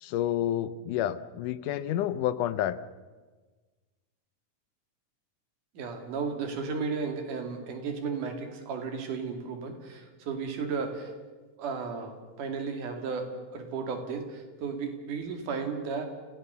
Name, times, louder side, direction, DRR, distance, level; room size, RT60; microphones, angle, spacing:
voice 1, 0.0-2.8, left 11 dB, 75° left, 13 dB, 2.2 m, -29 dB
voice 2, 5.8-11.1 11.6-12.1 12.4-13.3 13.5-16.1, right 5 dB, 70° right, 5 dB, 3.8 m, -34 dB
29.0 x 17.0 x 6.8 m, 1.3 s
omnidirectional pair, 3.9 m